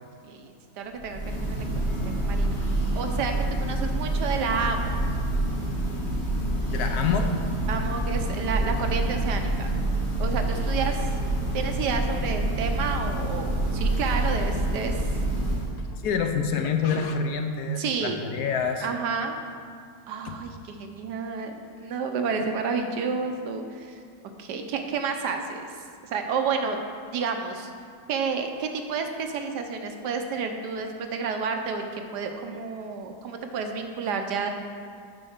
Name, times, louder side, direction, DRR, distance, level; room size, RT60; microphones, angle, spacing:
voice 1, 0.2-2.7 2.9-5.0 7.7-9.7 10.2-11.1 11.5-15.1 17.8-18.2 18.8-19.4 20.1-24.0 24.4-25.6 26.0-26.8 27.1-27.7 28.1-34.5, right 5 dB, 80° right, 5 dB, 1.4 m, -30 dB
Church bell, 0.9-15.9, right 1 dB, 45° left, 1.4 m, -27 dB
voice 2, 6.7-7.3 15.8-18.9 20.2-20.4, left 6 dB, 75° left, 5 dB, 1.2 m, -27 dB
8.8 x 4.4 x 6.4 m, 2.2 s
omnidirectional pair, 1.8 m